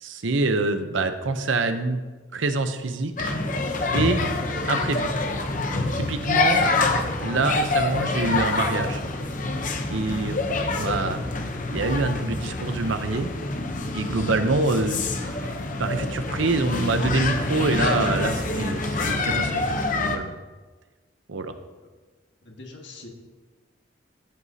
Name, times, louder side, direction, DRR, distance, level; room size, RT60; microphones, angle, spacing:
voice 1, 0.0-2.0 2.3-3.3 3.9-4.2 4.7-5.1 5.9-6.7 7.2-9.0 9.9-11.2 11.7-13.3 13.9-15.5 15.8-20.3 21.3-21.5, right 3 dB, 80° right, 9 dB, 0.7 m, -26 dB
sound 1, 3.2-20.2, left 3 dB, 40° left, 0.8 m, -26 dB
voice 2, 22.4-23.1, left 2 dB, 65° left, 1 dB, 1.7 m, -43 dB
14.0 x 8.1 x 2.8 m, 1.3 s
head